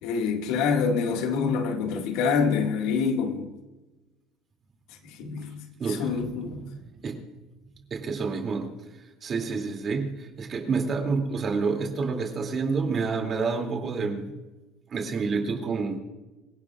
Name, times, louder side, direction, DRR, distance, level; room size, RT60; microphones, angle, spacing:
voice 1, 0.0-3.5 5.0-5.6 5.9-6.7, left 5 dB, 75° left, 1.9 m, -26 dB
voice 2, 5.8-7.2 7.9-8.8 9.2-14.3 14.9-16.0, right 4 dB, 35° right, 2.7 m, -29 dB
25.5 x 17.0 x 2.5 m
cardioid pair, 120°, 0 cm